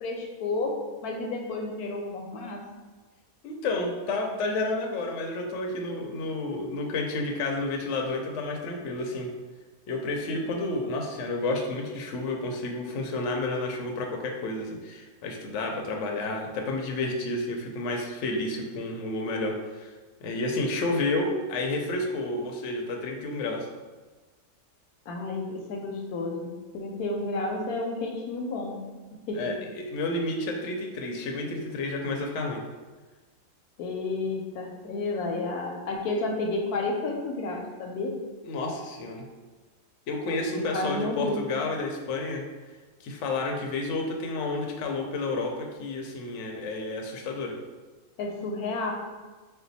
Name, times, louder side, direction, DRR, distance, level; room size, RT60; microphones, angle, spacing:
voice 1, 0.0-2.6 25.1-28.8 29.3-29.4 33.8-38.2 40.7-41.5 48.2-48.9, left 2 dB, 80° left, 2 dB, 1.1 m, -31 dB
voice 2, 3.4-9.3 9.9-19.9 20.2-23.7 29.3-32.6 38.4-39.2 40.1-42.4 43.0-47.5, left 2 dB, 65° left, 1 dB, 0.8 m, -30 dB
4.4 x 2.2 x 4.0 m, 1.3 s
omnidirectional pair, 1.6 m